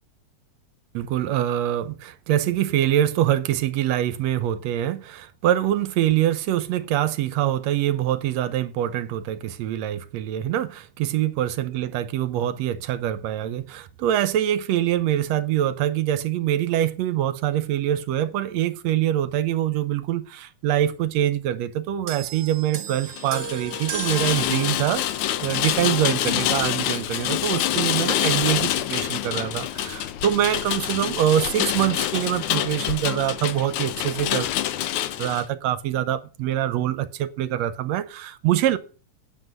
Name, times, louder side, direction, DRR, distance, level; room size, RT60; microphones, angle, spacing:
voice 1, 0.9-25.0 25.4-34.5 35.2-38.8, right 12 dB, 70° right, 1.9 m, -24 dB
sound 1, 22.1-25.7 26.6-26.7, right 6 dB, 55° right, 2.0 m, -36 dB
Rain, 23.1-35.5, left 12 dB, 80° left, 2.1 m, -26 dB
9.5 x 7.9 x 6.6 m
omnidirectional pair, 3.3 m